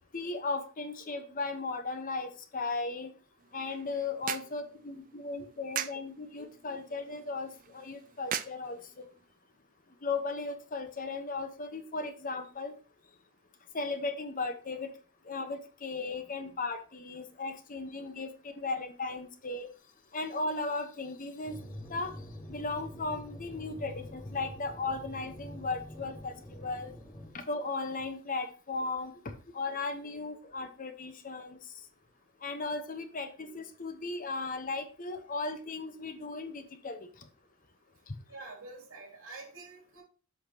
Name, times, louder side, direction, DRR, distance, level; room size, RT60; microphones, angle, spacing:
voice 1, 0.1-3.1 3.5-9.1 10.0-12.7 13.7-14.9 15.3-19.7 20.1-21.6 21.9-22.1 22.5-26.9 27.3-29.1 29.5-31.6 32.4-37.1, left 3 dB, 40° left, 8 dB, 0.9 m, -36 dB
sound 1, 3.4-9.3, right 9 dB, 40° right, 0.4 m, -42 dB
sound 2, 21.4-27.3, left 1 dB, 20° left, 1.3 m, -45 dB
voice 2, 38.3-40.0, right 3 dB, 80° right, 1 dB, 2.6 m, -47 dB
8.0 x 5.8 x 2.8 m, 0.39 s
head